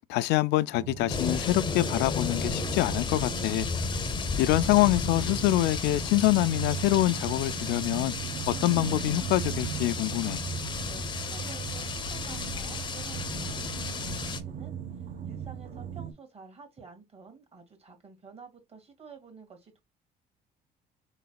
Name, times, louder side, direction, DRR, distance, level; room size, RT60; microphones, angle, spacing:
voice 1, 0.1-3.7 4.4-8.1 8.5-10.4, left 16 dB, 85° left, 0.4 m, -25 dB
sound 1, 0.7-16.1, right 9 dB, 55° right, 1.0 m, -38 dB
sound 2, 1.1-14.4, left 5 dB, 25° left, 0.6 m, -33 dB
voice 2, 10.9-19.8, right 5 dB, 40° right, 2.1 m, -50 dB
4.0 x 3.9 x 2.3 m
cardioid pair, 110°, 17 cm